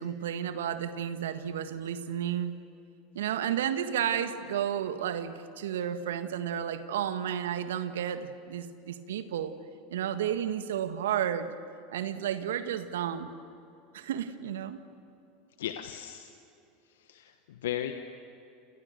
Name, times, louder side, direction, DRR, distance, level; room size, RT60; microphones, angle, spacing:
voice 1, 0.0-2.6 3.2-9.5 9.9-11.5 11.9-13.3 13.9-14.8, right 9 dB, 75° right, 10 dB, 1.6 m, -32 dB
voice 2, 15.6-16.3 17.1-17.9, left 11 dB, 75° left, 7 dB, 1.3 m, -36 dB
29.5 x 28.5 x 6.9 m, 2.8 s
hypercardioid pair, 80°, 0 cm